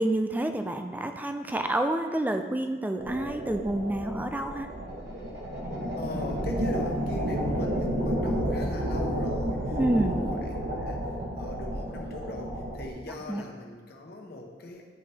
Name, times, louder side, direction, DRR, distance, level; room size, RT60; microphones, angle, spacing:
voice 1, 0.0-4.7 9.8-10.2 13.3-13.4, right 1 dB, 10° right, 6 dB, 0.4 m, -28 dB
sound 1, 3.0-12.9, equal, 65° right, 1.1 m, -31 dB
voice 2, 6.0-11.1 11.4-14.8, left 2 dB, 60° left, 1 dB, 1.0 m, -40 dB
11.0 x 4.2 x 3.4 m, 1.4 s
head